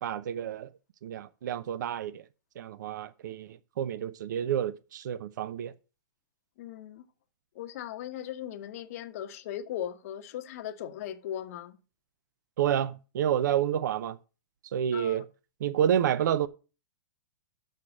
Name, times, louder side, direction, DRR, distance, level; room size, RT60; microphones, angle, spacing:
voice 1, 0.0-0.7 1.0-2.2 2.6-5.7 12.6-14.2 14.7-15.2 15.6-16.5, right 10 dB, 65° right, 0.7 m, -29 dB
voice 2, 6.6-7.0 7.5-11.8 14.9-15.2, left 11 dB, 45° left, 1.0 m, -38 dB
6.6 x 6.6 x 7.2 m
hypercardioid pair, 160°, 11 cm